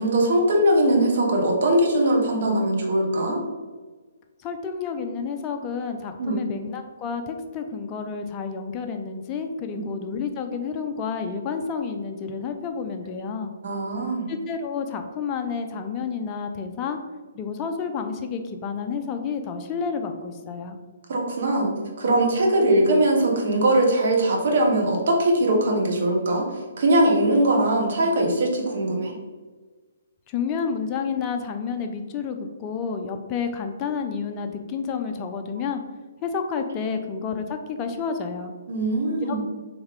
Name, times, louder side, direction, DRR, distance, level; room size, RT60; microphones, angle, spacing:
voice 1, 0.0-3.4 6.2-6.4 9.7-9.8 13.6-14.3 21.1-26.4 26.8-29.1 38.7-39.4, right 1 dB, 55° right, 0 dB, 1.0 m, -21 dB
voice 2, 4.4-13.5 14.3-17.0 17.3-20.8 30.3-35.8 36.2-38.5 39.3-39.4, left 5 dB, 25° left, 5 dB, 0.4 m, -30 dB
3.5 x 3.1 x 3.4 m, 1.4 s
figure-of-eight pair, 130°, 0 cm